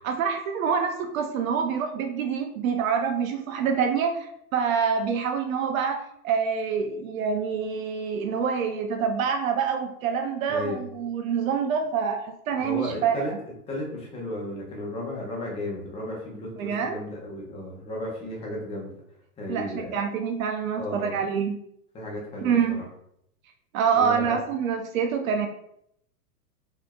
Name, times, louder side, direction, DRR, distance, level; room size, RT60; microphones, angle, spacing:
voice 1, 0.0-6.0 6.2-13.4 16.6-17.0 19.5-21.6 22.4-22.8 23.7-25.5, right 6 dB, 60° right, 5 dB, 0.5 m, -26 dB
voice 2, 12.6-13.3 13.7-18.9 19.4-20.0 20.8-21.2 21.9-22.8 23.9-24.4, left 1 dB, 15° left, -2 dB, 0.8 m, -34 dB
4.8 x 2.7 x 2.2 m, 0.74 s
hypercardioid pair, 140°, 47 cm